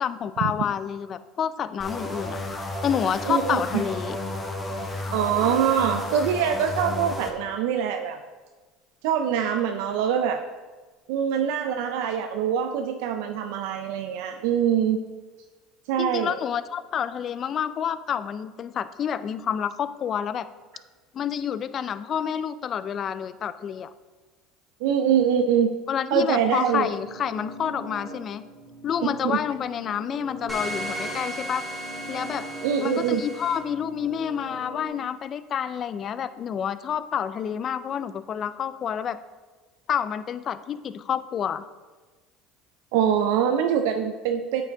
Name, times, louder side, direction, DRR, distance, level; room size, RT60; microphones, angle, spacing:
voice 1, 0.0-2.4 2.8-4.2 16.0-20.5 21.1-23.9 25.9-28.4 28.8-31.7 32.1-32.5 32.8-39.2 39.9-41.6, left 8 dB, 40° left, 14 dB, 0.3 m, -28 dB
sound 1, 1.8-7.3, left 1 dB, 15° left, 0.9 m, -32 dB
voice 2, 3.3-3.6 5.1-8.2 9.0-10.4 11.1-15.0 15.9-16.4 24.8-25.7 26.1-26.9 29.2-29.4 32.6-33.3 42.9-44.6, right 8 dB, 80° right, 6 dB, 0.4 m, -24 dB
sound 2, 26.9-34.9, right 1 dB, 70° left, 2.1 m, -42 dB
sound 3, 30.5-33.6, equal, 10° right, 1.7 m, -35 dB
8.6 x 4.8 x 3.5 m, 1.3 s
supercardioid pair, 105°, 0 cm